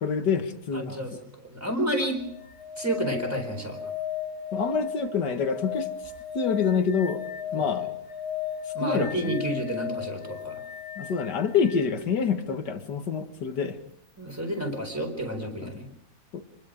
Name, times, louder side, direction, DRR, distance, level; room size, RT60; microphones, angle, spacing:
voice 1, 0.0-1.0 4.5-5.9 6.3-7.3 7.5-7.9 8.8-9.4 11.0-13.8 15.6-15.7 16.3-16.4, left 6 dB, 90° left, 7 dB, 2.3 m, -27 dB
voice 2, 0.7-2.2 2.8-3.8 7.5-7.8 8.7-10.6 14.2-15.9, right 1 dB, 10° right, 2 dB, 4.3 m, -30 dB
sound 1, 2.1-12.0 14.3-14.4, left 9 dB, 40° left, 3.0 m, -36 dB
27.0 x 20.5 x 5.1 m, 0.72 s
omnidirectional pair, 1.8 m